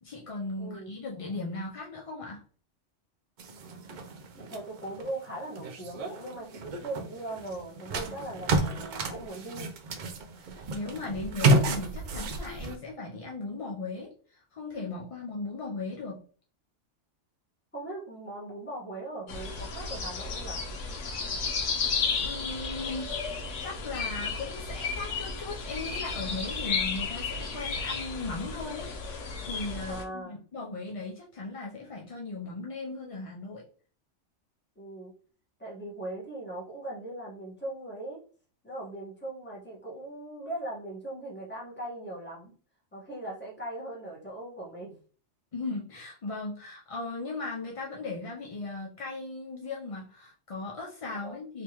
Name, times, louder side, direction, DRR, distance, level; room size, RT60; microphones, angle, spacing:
voice 1, 0.0-2.4 10.4-16.2 21.5-21.6 22.2-23.1 23.6-33.7 45.5-51.6, left 3 dB, 45° left, -3 dB, 0.4 m, -37 dB
voice 2, 0.6-0.9 4.4-9.7 17.7-20.7 29.9-30.4 34.7-35.1 35.6-38.2 38.6-42.5 42.9-45.0 51.1-51.4, right 1 dB, 10° left, -4 dB, 1.2 m, -39 dB
sound 1, 3.4-12.8, right 2 dB, 65° right, 0.5 m, -31 dB
sound 2, 19.3-30.0, left 5 dB, 75° left, 1.0 m, -33 dB
3.4 x 2.9 x 2.9 m, 0.41 s
omnidirectional pair, 1.3 m